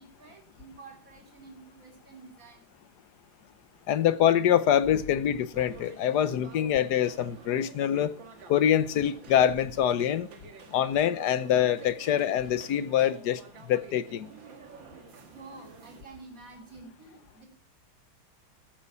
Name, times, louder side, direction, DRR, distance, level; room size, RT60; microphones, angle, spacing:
voice 1, 0.0-2.6 15.3-17.5, right 3 dB, 40° right, 3.6 m, -49 dB
voice 2, 3.9-8.1 8.5-10.3 10.7-13.4 13.7-14.3, left 10 dB, 60° left, 1.3 m, -25 dB
sound 1, 5.5-16.0, right 5 dB, 70° right, 2.2 m, -49 dB
14.0 x 9.0 x 5.6 m
omnidirectional pair, 2.2 m